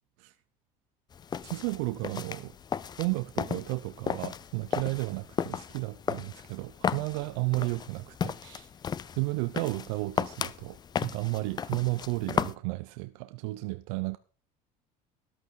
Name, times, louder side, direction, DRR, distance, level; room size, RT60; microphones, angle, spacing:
sound 1, 1.1-12.5, left 7 dB, 25° left, 0.5 m, -35 dB
voice 1, 1.4-2.6 3.0-8.7 9.1-14.2, right 22 dB, 90° right, 0.7 m, -33 dB
13.5 x 11.5 x 3.9 m
cardioid pair, 130°, 16 cm